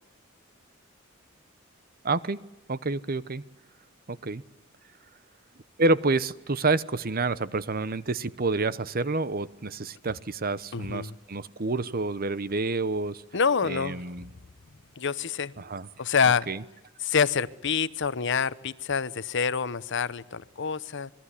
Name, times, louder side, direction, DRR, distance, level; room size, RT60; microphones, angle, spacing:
voice 1, 2.0-2.4 2.7-3.4 4.1-4.4 5.8-13.2 13.6-14.2 15.6-15.9 16.5-16.6, right 3 dB, 45° right, 16 dB, 1.0 m, -28 dB
voice 2, 10.7-11.1 13.3-14.0 15.0-15.5 16.0-16.5 17.0-21.1, left 6 dB, 60° left, 17 dB, 0.9 m, -26 dB
27.0 x 21.5 x 9.9 m, 0.92 s
head